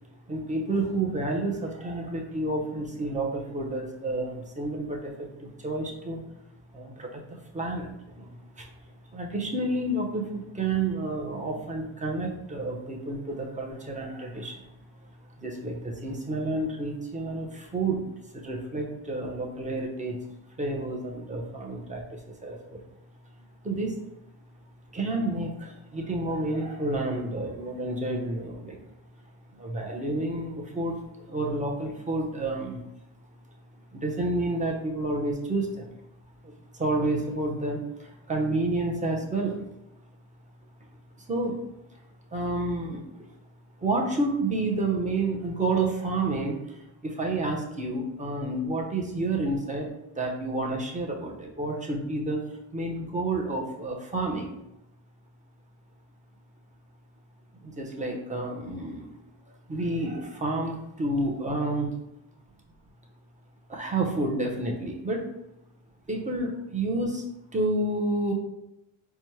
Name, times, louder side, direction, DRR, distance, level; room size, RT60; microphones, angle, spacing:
voice 1, 0.3-6.2 6.7-7.2 7.5-8.3 8.6-8.7 9.1-14.7 15.4-18.1 18.3-20.2 20.6-22.8 23.6-24.0 24.9-28.8 29.5-32.8 33.9-35.9 36.4-39.6 41.3-41.6 42.3-43.0 43.8-49.9 50.1-52.4 52.7-54.5 57.6-59.1 59.7-61.9 63.7-65.2 66.1-67.2 67.5-68.3, right 2 dB, 15° right, 0 dB, 0.8 m, -30 dB
4.1 x 2.3 x 3.1 m, 0.89 s
supercardioid pair, 75°, 47 cm